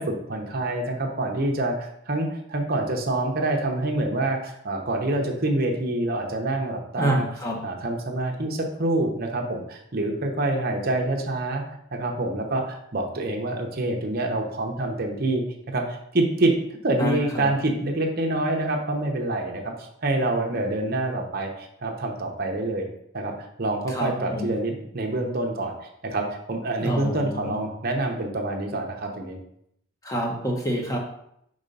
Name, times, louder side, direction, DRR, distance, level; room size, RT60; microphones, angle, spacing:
voice 1, 0.0-7.2 7.6-11.6 11.9-16.6 16.8-22.9 23.1-25.7 26.0-29.4, right 2 dB, 45° right, 2 dB, 0.9 m, -26 dB
voice 2, 7.0-7.6 17.0-17.5 23.9-24.5 26.8-27.6 30.0-31.0, right 1 dB, 15° left, -1 dB, 1.0 m, -27 dB
5.2 x 3.3 x 5.3 m, 0.74 s
head